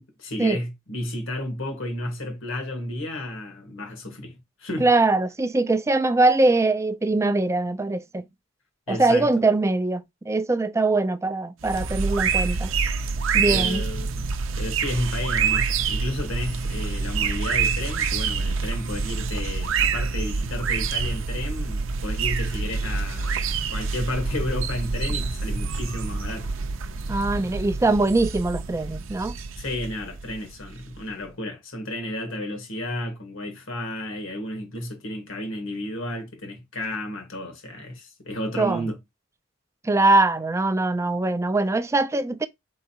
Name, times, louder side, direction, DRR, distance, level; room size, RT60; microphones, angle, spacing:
voice 1, 0.2-4.9 8.9-9.3 13.5-14.3 14.6-26.5 29.6-39.0, left 1 dB, 75° left, 1.6 m, -32 dB
voice 2, 4.8-8.2 8.9-12.7 13.3-13.8 27.1-29.3 38.6-38.9 39.8-42.5, right 2 dB, 15° right, 0.4 m, -22 dB
sound 1, 11.6-31.0, right 5 dB, 75° right, 0.6 m, -27 dB
4.4 x 3.7 x 2.8 m
head